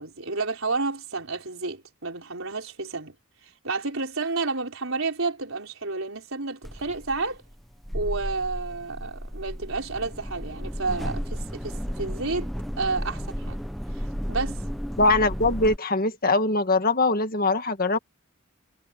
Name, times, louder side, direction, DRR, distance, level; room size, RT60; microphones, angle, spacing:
voice 1, 0.0-3.1 3.6-7.4 7.9-12.5 12.8-13.6 14.3-14.6, right 3 dB, 70° right, 4.9 m, -30 dB
sound 1, 6.6-15.8, equal, ahead, 1.0 m, -33 dB
voice 2, 15.0-18.0, left 2 dB, 45° left, 1.9 m, -22 dB
head